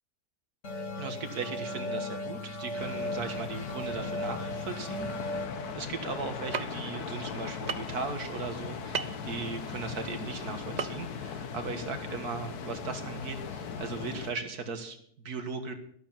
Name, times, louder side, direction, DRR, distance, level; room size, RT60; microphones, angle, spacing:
sound 1, 0.6-7.9, left 1 dB, 50° left, 1.8 m, -38 dB
voice 1, 1.0-15.7, right 4 dB, 75° right, 7 dB, 2.2 m, -38 dB
sound 2, 2.8-14.3, left 6 dB, 75° left, 1.6 m, -39 dB
sound 3, 6.5-6.6 7.7-7.9 8.9-9.2 10.8-10.9 11.2-11.3, right 6 dB, 55° right, 0.5 m, -32 dB
13.0 x 11.5 x 5.9 m, 0.64 s
omnidirectional pair, 1.7 m